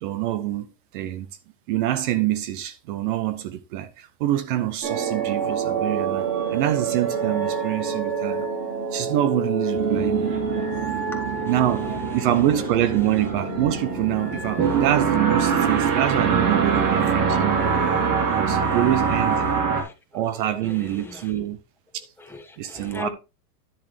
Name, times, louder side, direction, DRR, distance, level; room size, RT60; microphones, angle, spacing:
voice 1, 0.0-0.7 0.9-1.3 1.7-8.5 8.9-10.3 11.5-17.6 18.0-19.5 20.1-21.6 21.9-22.1 22.6-23.1, right 13 dB, 35° right, 0.4 m, -26 dB
sound 1, 4.8-18.3, right 5 dB, 80° right, 5.2 m, -29 dB
sound 2, 9.7-19.8, right 6 dB, 60° right, 3.2 m, -24 dB
voice 2, 11.1-12.6 14.7-14.8 15.7-15.9 16.6-17.1 18.1-21.3 22.2-23.1, left 2 dB, 5° left, 1.2 m, -42 dB
10.5 x 7.1 x 3.2 m
supercardioid pair, 150°, 49 cm